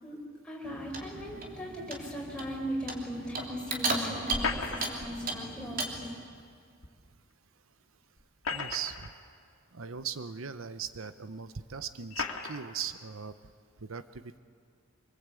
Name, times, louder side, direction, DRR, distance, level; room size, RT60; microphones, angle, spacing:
voice 1, 0.4-6.1, equal, 5° left, -3 dB, 5.4 m, -38 dB
Clock, 0.6-6.1, right 3 dB, 45° right, 3.0 m, -36 dB
sound 1, 4.3-5.1 6.8-6.9 8.2-9.1 10.0-10.1 11.0-11.1 12.1-12.6, left 4 dB, 90° left, 2.4 m, -35 dB
voice 2, 8.5-9.1 9.7-13.3 13.8-14.4, right 7 dB, 85° right, 12 dB, 0.8 m, -39 dB
26.0 x 23.5 x 8.4 m, 2.1 s
head